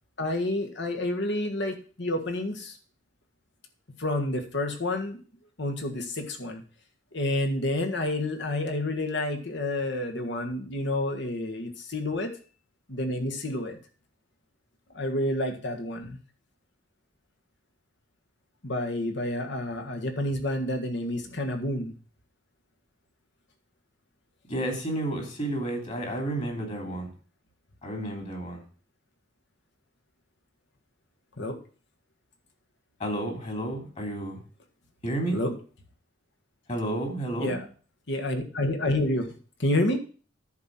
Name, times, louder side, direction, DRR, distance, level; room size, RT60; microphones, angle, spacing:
voice 1, 0.2-2.8 4.0-5.2 5.6-6.6 7.1-12.3 12.9-13.8 14.9-16.2 18.6-21.9 31.4-31.6 35.3-35.5 37.4-37.6 38.1-40.0, left 1 dB, 65° left, 4 dB, 1.7 m, -29 dB
voice 2, 24.5-27.1 27.8-28.6 33.0-34.4 35.0-35.4 36.7-37.6, right 1 dB, 40° left, 2 dB, 2.9 m, -31 dB
10.5 x 4.4 x 7.6 m, 0.40 s
head